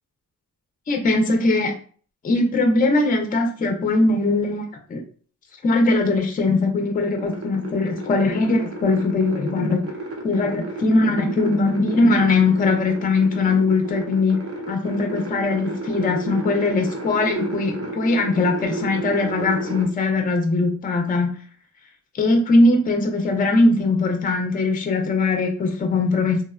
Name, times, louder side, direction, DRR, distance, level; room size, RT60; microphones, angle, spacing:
voice 1, 0.9-1.7 2.2-4.6 4.9-5.0 5.6-9.8 10.2-14.4 14.7-21.3 22.2-26.4, left 2 dB, 30° left, 4 dB, 0.4 m, -20 dB
sound 1, 7.2-19.9, right 2 dB, 50° right, 0.7 m, -32 dB
3.0 x 2.0 x 2.3 m, 0.44 s
wide cardioid pair, 145°, 31 cm